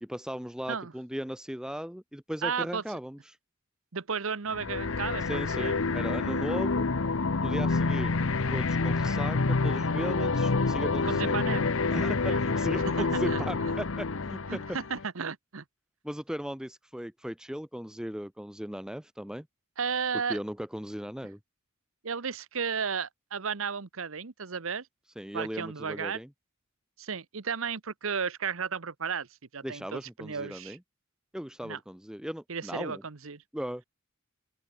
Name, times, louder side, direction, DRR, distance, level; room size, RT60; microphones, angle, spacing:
voice 1, 0.0-3.4 5.2-6.9 7.4-8.1 8.5-11.4 11.9-14.6 16.0-19.5 20.1-21.4 25.2-26.3 29.6-30.8 31.3-33.0 33.5-33.8, equal, 5° right, 0.9 m, -37 dB
voice 2, 2.4-2.8 3.9-5.8 11.0-11.7 12.2-12.4 13.0-13.4 14.5-15.6 19.8-20.4 22.0-24.9 25.3-26.2 27.0-29.3 29.5-30.8 31.6-31.8 32.5-33.4, right 6 dB, 70° right, 1.0 m, -34 dB
sound 1, 4.5-15.0, left 3 dB, 70° left, 0.9 m, -28 dB
open air
head